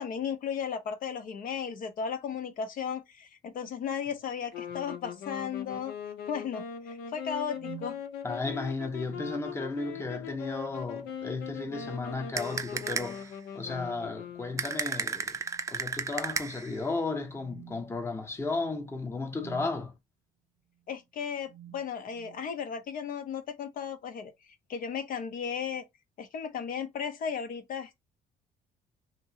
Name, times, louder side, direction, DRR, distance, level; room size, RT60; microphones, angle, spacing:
voice 1, 0.0-5.9 6.3-8.0 20.9-25.8 26.2-28.0, left 7 dB, 55° left, 0.6 m, -35 dB
sound 1, 4.1-4.2 4.7-4.9 5.4-5.9 7.5-8.0 9.0-10.3 10.6-10.9 11.6-12.0 12.3-12.7 13.6-14.2 15.3-15.8 16.2-16.4 17.3-19.8 20.7-21.0 21.4-22.5, right 12 dB, 70° right, 0.7 m, -52 dB
sound 2, 4.5-14.9, left 8 dB, 85° left, 0.8 m, -40 dB
voice 2, 8.2-15.4 15.7-19.9, left 3 dB, 15° left, 0.7 m, -34 dB
sound 3, 12.4-13.3 14.6-16.8, right 5 dB, 20° right, 0.4 m, -34 dB
2.9 x 2.6 x 2.7 m
cardioid pair, 110°, 17 cm